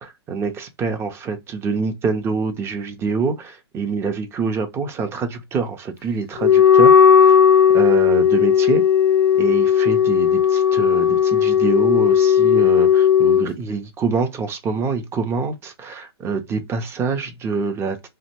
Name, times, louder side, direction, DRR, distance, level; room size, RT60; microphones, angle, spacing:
voice 1, 0.0-7.4 7.7-8.8 9.4-18.1, right 5 dB, 20° right, 0.6 m, -25 dB
Wind instrument woodwind instrument, 6.4-13.5, left 8 dB, 65° left, 0.6 m, -15 dB
2.8 x 2.1 x 4.1 m
hypercardioid pair, 120°, 14 cm